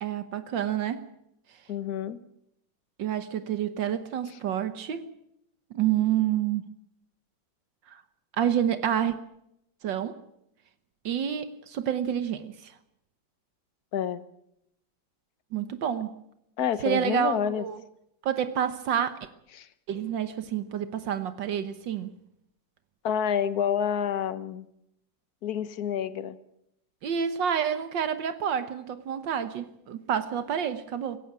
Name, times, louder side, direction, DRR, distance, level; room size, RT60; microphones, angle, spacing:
voice 1, 0.0-1.0 3.0-5.1 5.7-6.7 7.9-8.0 8.4-9.2 9.8-10.2 11.1-12.7 15.5-16.1 16.8-17.8 18.2-19.2 19.9-22.1 27.0-31.2, right 9 dB, 75° right, 11 dB, 1.7 m, -28 dB
voice 2, 1.7-2.2 13.9-14.2 16.6-17.6 19.5-19.7 23.0-24.7 25.4-26.4, left 8 dB, 55° left, 14 dB, 1.5 m, -28 dB
16.5 x 16.5 x 9.9 m, 0.79 s
omnidirectional pair, 2.0 m